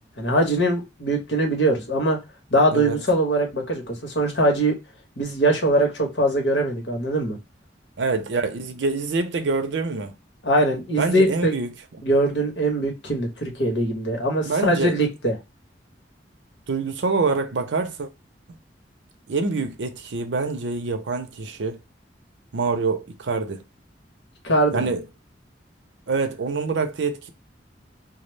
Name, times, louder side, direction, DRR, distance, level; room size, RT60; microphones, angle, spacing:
voice 1, 0.2-2.2 2.5-4.8 5.2-7.4 10.4-11.5 12.0-15.3 24.4-24.9, right 1 dB, 85° left, 1.0 m, -22 dB
voice 2, 8.0-10.1 11.0-11.7 14.4-15.0 16.7-18.1 18.5-18.6 19.3-21.8 22.5-23.6 24.7-25.0 26.1-27.3, right 4 dB, 90° right, 0.5 m, -25 dB
2.3 x 2.0 x 3.1 m
head